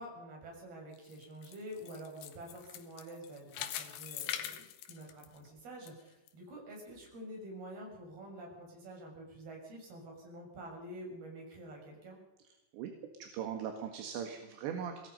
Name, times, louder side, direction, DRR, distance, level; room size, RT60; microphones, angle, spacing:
voice 1, 0.0-12.2, right 1 dB, 60° right, 1 dB, 8.4 m, -48 dB
sound 1, 0.9-5.9 6.3-6.4 7.0-7.1, left 11 dB, 85° left, 3.8 m, -43 dB
voice 2, 13.2-15.1, right 8 dB, 80° right, 4 dB, 4.1 m, -39 dB
25.0 x 19.5 x 5.5 m, 0.94 s
omnidirectional pair, 5.1 m